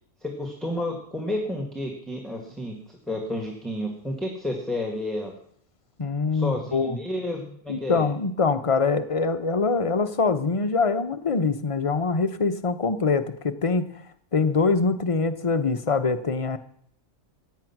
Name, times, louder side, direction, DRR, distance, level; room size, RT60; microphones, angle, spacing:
voice 1, 0.2-2.8 3.1-5.3 6.3-8.1, left 1 dB, ahead, 1 dB, 1.8 m, -31 dB
voice 2, 6.0-7.0 7.7-13.9 14.3-16.6, left 4 dB, 35° left, 9 dB, 0.6 m, -24 dB
15.5 x 9.4 x 5.9 m, 0.64 s
omnidirectional pair, 1.5 m